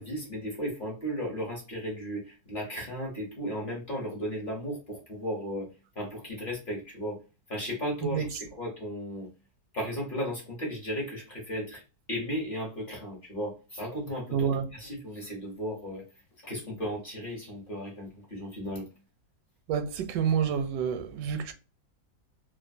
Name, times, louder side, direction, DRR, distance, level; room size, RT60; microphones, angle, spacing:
voice 1, 0.0-5.7 5.9-7.2 7.5-9.3 9.7-11.8 12.1-16.0 16.4-18.9, equal, 40° left, 0.9 m, -35 dB
voice 2, 8.0-8.4 14.3-14.7 19.7-21.5, right 7 dB, 85° right, 1.2 m, -28 dB
3.3 x 2.1 x 2.5 m
omnidirectional pair, 1.8 m